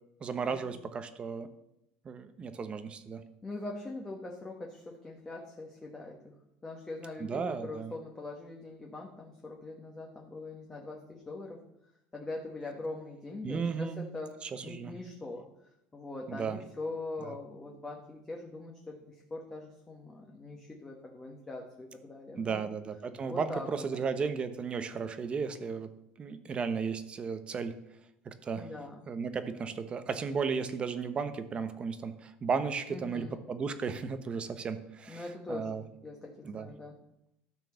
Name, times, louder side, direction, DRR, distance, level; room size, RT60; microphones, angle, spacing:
voice 1, 0.2-1.5 2.0-3.2 7.2-7.9 13.4-14.0 14.4-14.9 16.3-16.6 17.2-17.4 22.4-25.9 26.2-27.8 28.2-28.7 29.1-35.8 36.4-36.7, right 5 dB, 30° right, 11 dB, 0.9 m, -35 dB
voice 2, 3.4-6.3 6.6-11.6 12.1-14.3 14.6-15.4 15.9-22.6 23.3-24.0 28.5-29.0 32.9-33.4 35.1-36.9, left 2 dB, 15° left, 0 dB, 1.4 m, -42 dB
12.5 x 4.5 x 6.9 m, 0.83 s
cardioid pair, 130°, 4 cm